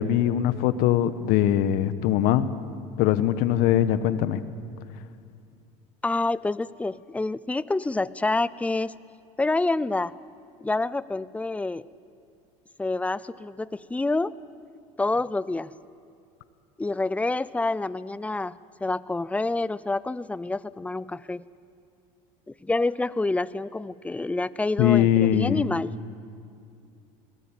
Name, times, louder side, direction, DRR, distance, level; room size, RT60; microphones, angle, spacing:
voice 1, 0.0-2.5 3.0-4.4 24.8-25.7, left 11 dB, 65° left, 13 dB, 1.2 m, -21 dB
voice 2, 6.0-8.9 9.4-10.2 10.6-11.9 12.8-14.3 15.0-15.7 16.8-21.4 22.5-25.9, left 2 dB, 10° left, 18 dB, 0.6 m, -27 dB
21.0 x 18.5 x 9.1 m, 2.4 s
supercardioid pair, 100°, 16 cm